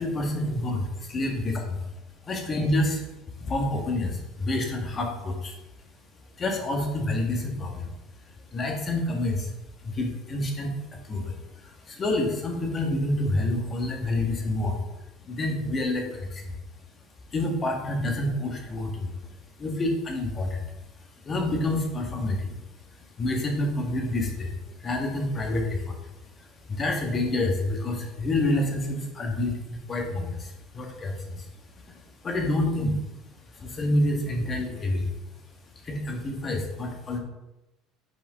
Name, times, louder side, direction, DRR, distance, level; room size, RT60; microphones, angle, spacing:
voice 1, 0.0-0.9 1.1-1.3 2.3-3.0 3.4-5.6 6.4-7.9 8.5-9.5 9.8-14.8 15.2-16.6 17.3-19.1 19.6-20.7 21.2-22.5 23.2-26.0 26.4-31.5 31.9-33.0 33.5-35.1 35.8-37.2, left 1 dB, 30° left, 2 dB, 1.6 m, -28 dB
8.0 x 5.1 x 3.6 m, 0.99 s
supercardioid pair, 120°, 0 cm